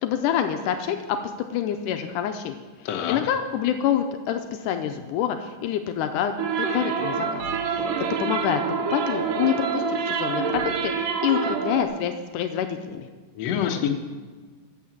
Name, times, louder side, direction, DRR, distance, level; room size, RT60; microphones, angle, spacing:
voice 1, 0.0-1.2 1.5-2.6 3.1-6.3 6.6-7.9 8.2-8.6 8.9-13.1, left 9 dB, 85° left, 7 dB, 2.1 m, -27 dB
voice 2, 2.9-3.2 13.4-13.9, left 9 dB, 65° left, 4 dB, 1.9 m, -26 dB
sound 1, 6.4-11.9, right 5 dB, 85° right, 2.8 m, -26 dB
13.5 x 5.9 x 7.2 m, 1.4 s
omnidirectional pair, 3.7 m